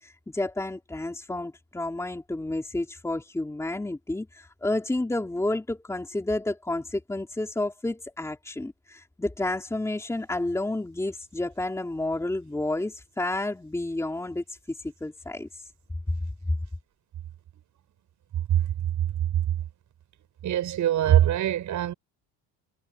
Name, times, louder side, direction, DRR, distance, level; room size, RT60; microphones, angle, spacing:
voice 1, 0.0-15.7, left 2 dB, 5° left, 3.4 m, -30 dB
voice 2, 20.4-21.9, right 11 dB, 50° right, 7.8 m, -22 dB
cardioid pair, 135°, 39 cm